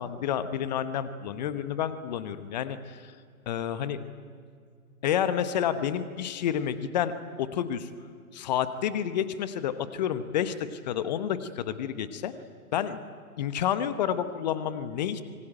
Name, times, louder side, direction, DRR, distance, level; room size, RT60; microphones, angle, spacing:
voice 1, 0.0-3.1 3.5-4.0 5.0-7.9 8.3-12.3 12.7-13.0 13.4-15.2, left 9 dB, 30° left, 12 dB, 1.2 m, -29 dB
26.0 x 24.0 x 9.0 m, 2.2 s
figure-of-eight pair, 130°, 45 cm